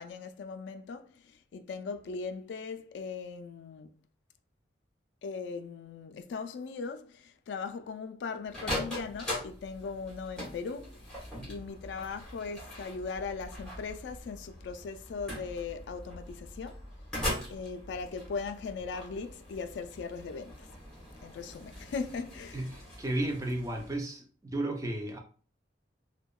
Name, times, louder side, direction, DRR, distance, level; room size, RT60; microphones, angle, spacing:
voice 1, 0.0-3.9 5.2-11.0 11.5-16.9 17.5-20.7 21.2-22.7, left 5 dB, 80° left, 0.3 m, -39 dB
sound 1, 8.5-24.0, left 1 dB, 5° left, 1.0 m, -41 dB
voice 2, 22.5-24.3 24.5-25.2, right 1 dB, 20° right, 0.4 m, -33 dB
2.7 x 2.1 x 2.2 m
head